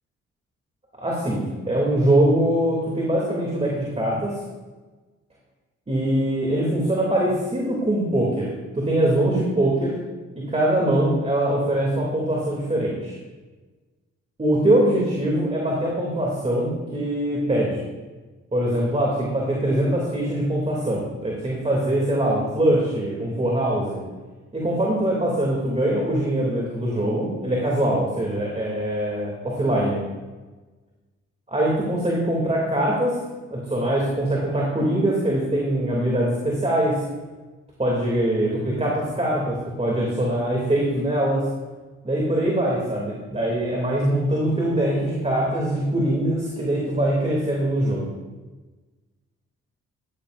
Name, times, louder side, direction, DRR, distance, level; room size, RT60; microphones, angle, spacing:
voice 1, 1.0-4.4 5.9-8.5 8.7-10.0 10.3-13.2 14.4-17.8 18.5-24.0 24.5-30.0 31.5-33.2 33.5-37.0 37.8-41.4 42.0-48.1, right 1 dB, 20° right, -3 dB, 2.7 m, -23 dB
13.0 x 10.5 x 2.6 m, 1.3 s
cardioid pair, 65°, 30 cm